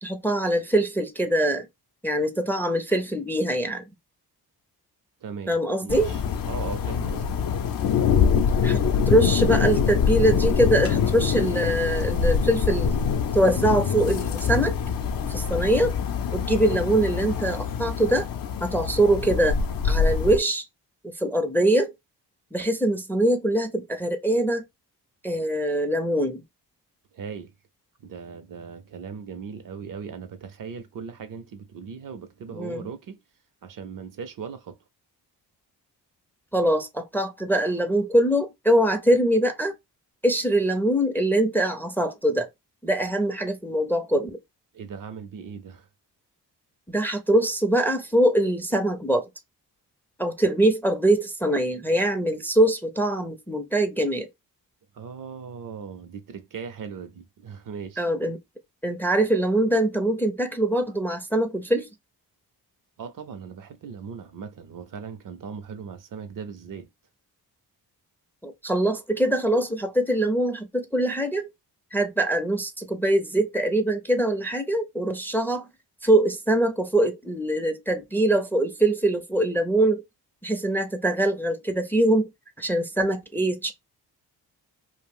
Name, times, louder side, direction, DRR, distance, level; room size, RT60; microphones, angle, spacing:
voice 1, 0.0-1.7 2.0-3.9 5.5-6.1 8.6-13.0 13.3-14.8 15.3-15.9 16.3-18.3 18.6-19.6 19.8-20.6 21.2-21.9 22.5-24.6 25.2-26.4 32.5-32.9 36.5-39.7 40.2-42.5 42.8-44.4 46.9-49.3 50.2-54.3 58.0-58.4 58.8-61.9 68.4-71.5 71.9-75.7 76.0-80.0 80.4-82.3 82.6-83.7, right 1 dB, 5° left, 0.5 m, -23 dB
voice 2, 5.2-6.2 6.5-7.2 27.1-27.5 28.0-33.2 33.6-34.8 44.7-45.9 54.9-58.1 63.0-66.9, right 6 dB, 50° right, 0.6 m, -38 dB
sound 1, 5.9-20.4, left 6 dB, 55° left, 0.6 m, -24 dB
2.4 x 2.0 x 3.5 m
cardioid pair, 65°, 41 cm